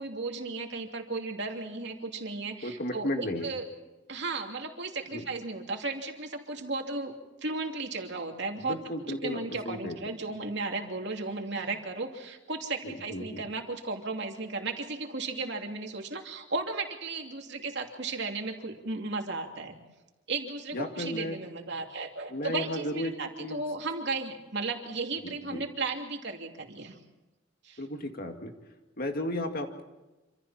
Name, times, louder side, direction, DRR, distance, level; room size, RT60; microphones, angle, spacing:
voice 1, 0.0-3.7 4.1-7.1 7.4-8.8 9.1-19.8 20.3-27.0 27.6-27.8, right 3 dB, 60° right, 2 dB, 3.0 m, -35 dB
voice 2, 2.6-3.5 5.1-5.2 8.6-9.4 9.7-10.0 12.8-13.5 20.7-21.4 22.3-23.1 23.4-23.6 25.2-25.6 27.8-28.5 29.0-29.8, left 1 dB, 50° left, 4 dB, 2.3 m, -34 dB
27.0 x 27.0 x 4.4 m, 1.1 s
head